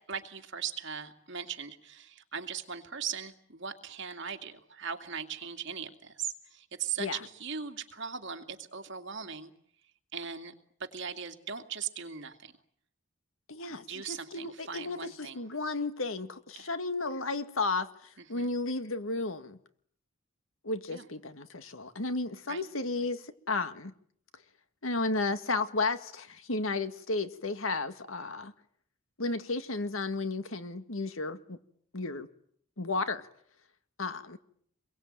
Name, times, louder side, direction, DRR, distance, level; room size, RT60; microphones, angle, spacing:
voice 1, 0.0-9.5 10.1-10.5 10.8-12.5 13.9-15.4 16.6-16.7 18.2-18.5 20.9-21.0 22.5-22.6, right 7 dB, 60° right, 2.5 m, -39 dB
voice 2, 13.5-17.9 18.3-19.6 20.6-23.9 24.8-28.5 29.2-31.6 31.9-32.3 32.8-33.3 34.0-34.4, left 3 dB, 80° left, 1.9 m, -33 dB
27.5 x 22.5 x 9.0 m
head